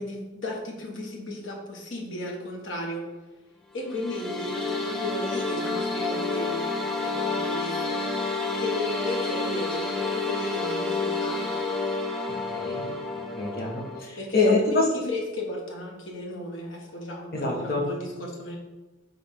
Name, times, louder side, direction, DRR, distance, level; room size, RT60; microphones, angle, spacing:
voice 1, 0.0-3.1 3.7-8.0 8.6-11.5 14.2-18.6, left 1 dB, 80° left, 0 dB, 1.6 m, -35 dB
sound 1, 3.8-14.0, left 3 dB, 5° left, 0.8 m, -29 dB
voice 2, 12.5-12.9 13.4-14.8 17.3-17.9, left 3 dB, 50° left, -2 dB, 1.4 m, -25 dB
9.4 x 3.8 x 3.8 m, 1.2 s
head